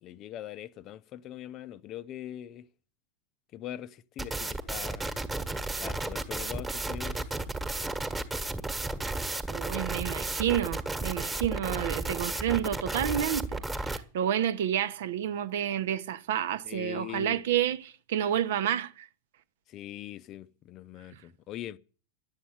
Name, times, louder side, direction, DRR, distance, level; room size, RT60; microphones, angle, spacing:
voice 1, 0.0-2.7 3.5-5.1 5.8-7.5 16.6-17.4 19.7-21.8, left 12 dB, 35° left, 0.7 m, -42 dB
sound 1, 4.2-14.0, right 2 dB, 10° right, 1.5 m, -33 dB
voice 2, 9.5-19.1, right 10 dB, 55° right, 0.8 m, -30 dB
11.5 x 8.4 x 9.8 m
figure-of-eight pair, 90°, 0 cm